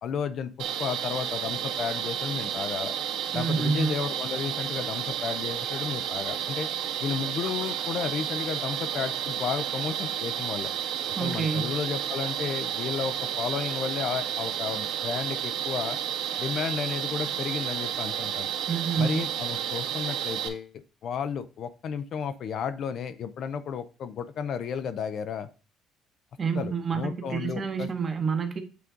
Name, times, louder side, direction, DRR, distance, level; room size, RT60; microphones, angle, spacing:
voice 1, 0.0-2.9 3.3-6.7 7.0-10.7 11.2-16.0 16.4-18.5 19.0-25.5 26.5-27.9, left 7 dB, 40° left, 0.4 m, -33 dB
sound 1, 0.6-20.5, right 9 dB, 90° right, 1.7 m, -31 dB
voice 2, 3.3-3.9 11.2-11.7 18.7-19.2 26.4-28.6, right 5 dB, 25° right, 0.9 m, -28 dB
8.3 x 3.8 x 3.7 m
cardioid pair, 175°, 0 cm